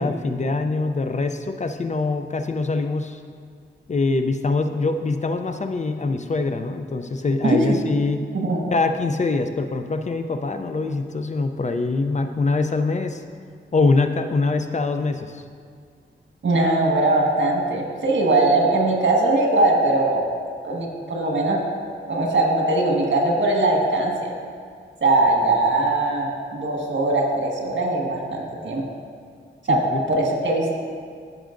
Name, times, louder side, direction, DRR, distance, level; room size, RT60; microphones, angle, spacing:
voice 1, 0.0-3.2 3.9-8.3 8.7-13.2 13.7-15.4 29.7-30.0, left 3 dB, 35° left, 7 dB, 0.5 m, -24 dB
voice 2, 16.4-20.2 20.6-21.6 22.1-24.3 25.0-28.8 29.7-29.8 30.1-30.9, right 2 dB, 65° right, 0 dB, 1.6 m, -20 dB
15.5 x 6.1 x 2.5 m, 2.1 s
wide cardioid pair, 100°, 20 cm